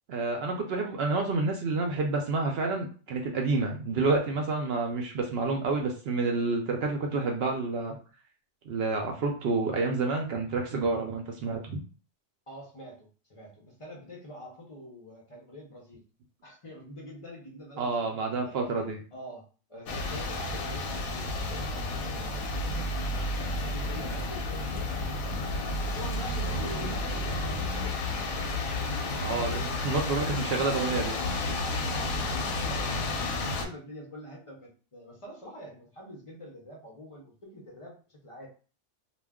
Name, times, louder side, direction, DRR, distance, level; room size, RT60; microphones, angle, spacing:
voice 1, 0.1-8.0 8.7-11.8 17.8-19.0 29.2-31.3, right 3 dB, 65° right, 2 dB, 0.6 m, -29 dB
voice 2, 12.5-16.0 16.4-18.5 19.1-19.4 19.7-23.0 23.3-28.8 29.5-30.1 30.7-30.8 32.4-38.5, equal, 45° left, -2 dB, 0.4 m, -46 dB
sound 1, 19.9-33.6, left 2 dB, 85° left, 1.0 m, -31 dB
2.3 x 2.2 x 3.4 m, 0.37 s
omnidirectional pair, 1.4 m